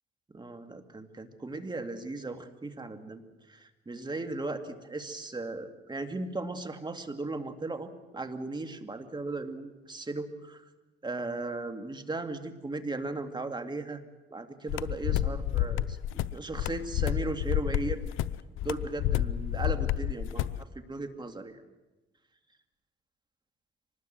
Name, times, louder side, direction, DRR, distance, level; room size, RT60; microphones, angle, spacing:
voice 1, 0.3-3.2 3.5-10.6 11.0-14.0 14.3-16.0 16.3-18.0 18.6-21.6, right 2 dB, 20° right, 7 dB, 2.3 m, -37 dB
sound 1, 14.7-20.6, left 12 dB, 90° left, 0.7 m, -30 dB
24.5 x 20.0 x 7.7 m, 1.1 s
cardioid pair, 90°, 20 cm